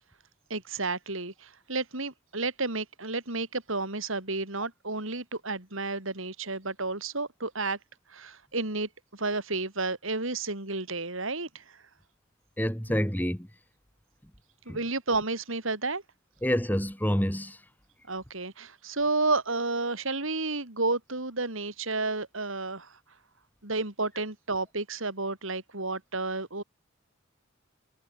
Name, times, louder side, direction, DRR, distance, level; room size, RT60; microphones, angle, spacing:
voice 1, 0.5-7.8 8.1-11.8 14.7-16.0 18.1-22.9 23.6-26.6, right 3 dB, 70° right, 5.4 m, -31 dB
voice 2, 12.6-13.5 14.7-14.8 16.4-17.6, equal, 10° left, 4.2 m, -27 dB
head